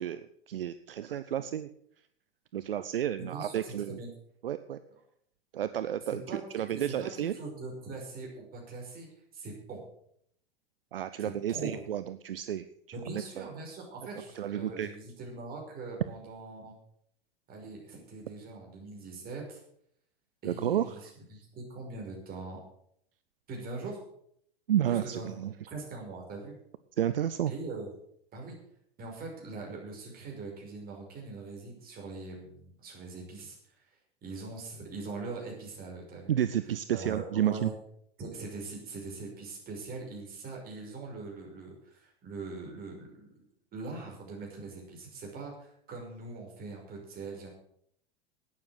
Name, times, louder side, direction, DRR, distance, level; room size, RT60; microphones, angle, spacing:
voice 1, 0.0-1.7 2.5-4.0 4.4-4.8 5.5-7.4 10.9-12.7 13.4-13.5 14.3-14.9 20.4-21.0 24.7-25.5 27.0-27.5 36.3-37.7, right 10 dB, 65° right, 12 dB, 0.7 m, -31 dB
voice 2, 3.2-4.1 6.1-6.4 6.7-9.1 9.3-9.8 11.2-11.8 12.9-16.7 17.5-19.6 20.4-21.0 21.3-22.6 23.5-24.0 24.9-25.3 25.7-26.5 27.5-27.9 28.3-28.6 29.0-33.6 34.2-36.3 36.9-37.7 38.2-43.4 43.7-47.5, right 3 dB, 30° right, 0 dB, 5.7 m, -42 dB
11.5 x 9.7 x 7.7 m, 0.69 s
figure-of-eight pair, 90°, 30 cm